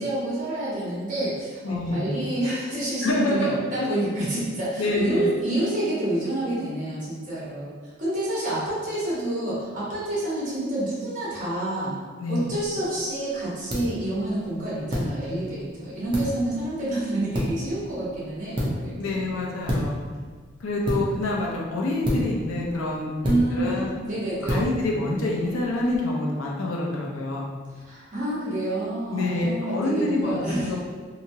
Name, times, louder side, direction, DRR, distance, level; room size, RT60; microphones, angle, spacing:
voice 1, 0.0-11.9 12.3-19.1 23.2-24.6 27.9-30.8, right 1 dB, 40° right, -8 dB, 1.1 m, -28 dB
voice 2, 1.6-2.2 3.0-3.5 4.8-5.3 12.2-12.5 19.0-19.9 20.6-23.1 23.5-23.9 24.4-27.4 29.1-30.8, left 2 dB, 85° left, -2 dB, 0.6 m, -26 dB
sound 1, 12.5-26.0, equal, 25° right, 0.5 m, -32 dB
2.9 x 2.7 x 2.6 m, 1.5 s
head